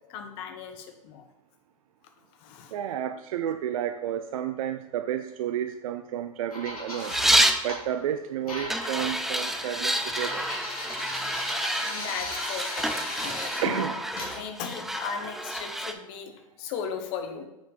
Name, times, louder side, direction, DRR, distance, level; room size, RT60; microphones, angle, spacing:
voice 1, 0.0-1.2 2.4-2.7 10.8-13.8 14.2-16.3 16.6-17.5, left 7 dB, 50° left, 6 dB, 1.1 m, -37 dB
voice 2, 2.7-7.1 7.6-10.5 13.6-14.0, right 10 dB, 70° right, 9 dB, 0.4 m, -31 dB
sound 1, 6.5-7.8 8.5-13.6 14.1-14.4, left 1 dB, 90° left, 2.2 m, -36 dB
sound 2, 7.0-7.7 8.7-15.9, right 1 dB, ahead, 0.4 m, -28 dB
5.7 x 4.6 x 4.1 m, 0.99 s
hypercardioid pair, 105°, 18 cm